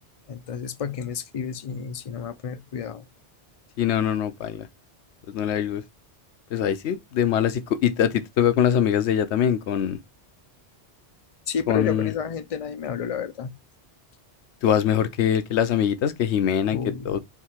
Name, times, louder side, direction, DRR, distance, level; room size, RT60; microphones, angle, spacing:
voice 1, 0.3-3.1 11.5-13.5 16.7-17.2, left 7 dB, 55° left, 0.4 m, -31 dB
voice 2, 3.8-4.7 5.3-5.8 6.5-10.0 11.7-12.1 14.6-16.8 17.0-17.2, left 9 dB, 80° left, 0.9 m, -23 dB
3.6 x 2.8 x 4.2 m
omnidirectional pair, 1.2 m